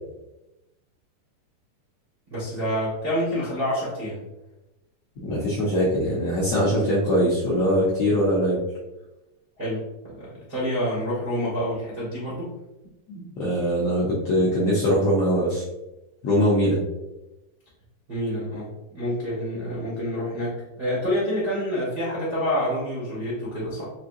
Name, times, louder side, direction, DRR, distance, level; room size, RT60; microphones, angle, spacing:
voice 1, 2.3-4.2 9.6-12.5 18.1-18.7 18.9-23.8, equal, 70° right, -9 dB, 0.5 m, -27 dB
voice 2, 5.2-8.6 13.1-15.6 16.2-16.8, equal, 75° left, -6 dB, 1.4 m, -22 dB
5.5 x 2.8 x 2.5 m, 0.96 s
omnidirectional pair, 3.9 m